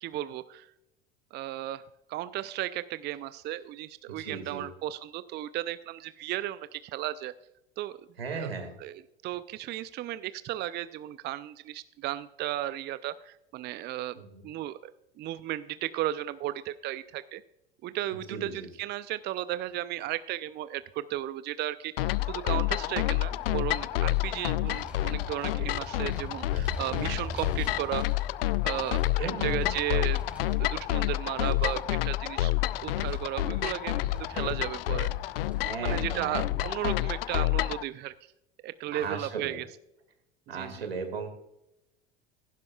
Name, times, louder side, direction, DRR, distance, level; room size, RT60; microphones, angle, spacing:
voice 1, 0.0-0.7 1.3-1.8 2.1-7.3 7.8-8.0 8.3-8.5 8.8-14.9 15.2-17.4 17.8-28.0 28.6-30.2 30.6-32.5 32.8-35.1 35.6-38.1 38.6-39.7 40.5-40.9, right 14 dB, 35° right, 15 dB, 0.5 m, -35 dB
voice 2, 4.1-4.7 8.2-8.7 14.2-14.4 18.3-18.7 26.9-27.2 29.2-29.8 35.6-36.7 38.9-39.6 40.5-41.3, right 4 dB, 85° right, 6 dB, 2.1 m, -37 dB
sound 1, 22.0-37.8, left 15 dB, 70° left, 0.5 m, -29 dB
Vehicle, 23.3-36.5, equal, 5° right, 3.9 m, -46 dB
16.0 x 11.5 x 2.4 m, 0.84 s
figure-of-eight pair, 75°, 30 cm